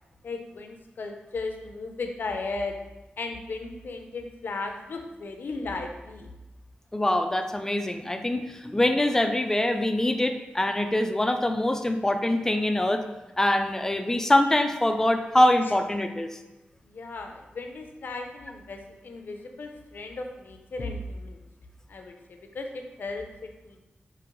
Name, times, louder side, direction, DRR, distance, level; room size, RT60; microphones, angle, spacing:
voice 1, 0.2-2.8 3.2-6.3 15.7-15.8 16.8-21.4 21.9-23.8, left 3 dB, 70° left, 4 dB, 0.5 m, -36 dB
voice 2, 6.9-13.0 13.4-16.4, left 1 dB, 15° left, 6 dB, 0.3 m, -24 dB
4.9 x 2.9 x 3.0 m, 1.0 s
wide cardioid pair, 125°, 4 cm